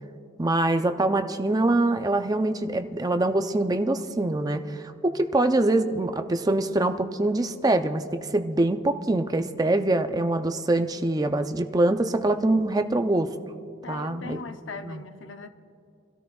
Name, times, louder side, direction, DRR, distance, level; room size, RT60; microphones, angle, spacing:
voice 1, 0.4-13.3 13.9-14.4 14.8-15.0, right 2 dB, 20° right, 7 dB, 0.5 m, -24 dB
voice 2, 13.8-15.5, left 5 dB, 70° left, 8 dB, 0.7 m, -39 dB
26.5 x 13.0 x 2.3 m, 2.7 s
head